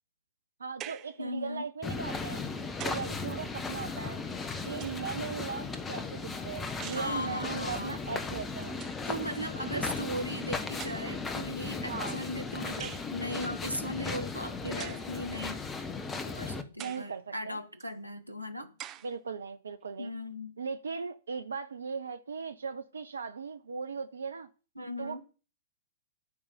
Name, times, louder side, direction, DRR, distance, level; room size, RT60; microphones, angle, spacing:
voice 1, 0.6-2.4 2.8-4.2 4.6-8.8 9.7-9.8 11.9-12.2 16.8-17.6 19.0-20.1 20.6-24.5 25.0-25.2, right 5 dB, 70° right, 0.9 m, -38 dB
sound 1, 0.8-1.2 2.3-3.2 4.3-5.2 6.8-7.2 8.3-8.4 8.7-9.1 10.1-10.2 10.8-11.3 12.8-13.1 14.8-15.1 15.8-15.9 16.8-17.1 17.8-17.9 18.8-19.1, right 12 dB, 30° right, 0.8 m, -45 dB
voice 2, 1.2-1.6 6.9-8.0 9.1-15.6 16.2-18.7 20.0-20.5 24.8-25.2, equal, 85° right, 1.5 m, -38 dB
sound 2, 1.8-16.6, left 4 dB, 15° left, 1.4 m, -36 dB
13.5 x 5.5 x 7.0 m
figure-of-eight pair, 105°, 0 cm